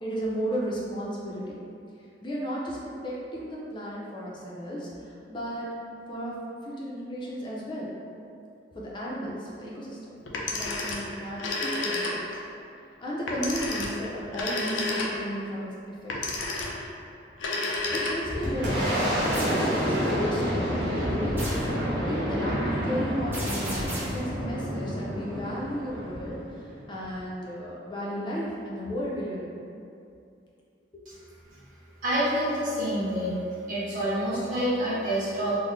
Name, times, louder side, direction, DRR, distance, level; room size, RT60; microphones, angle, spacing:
voice 1, 0.0-1.5 2.2-5.7 6.1-7.9 8.7-10.2 10.5-12.4 13.0-15.7 16.0-16.4 17.9-21.4 22.1-26.4 26.9-29.6 30.9-31.0, equal, 25° left, -5 dB, 0.5 m, -34 dB
Telephone, 10.3-12.5 13.3-15.4 16.1-16.9 17.3-18.5, left 2 dB, 90° left, 0.5 m, -31 dB
Boom, 17.8-27.2, equal, 75° right, 1.0 m, -29 dB
sound 1, 19.3-19.6 21.4-21.7 23.3-24.2, right 1 dB, 10° right, 0.7 m, -35 dB
voice 2, 32.0-33.4 33.7-35.5, right 1 dB, 45° right, -12 dB, 1.4 m, -27 dB
3.8 x 2.0 x 3.1 m, 2.6 s
head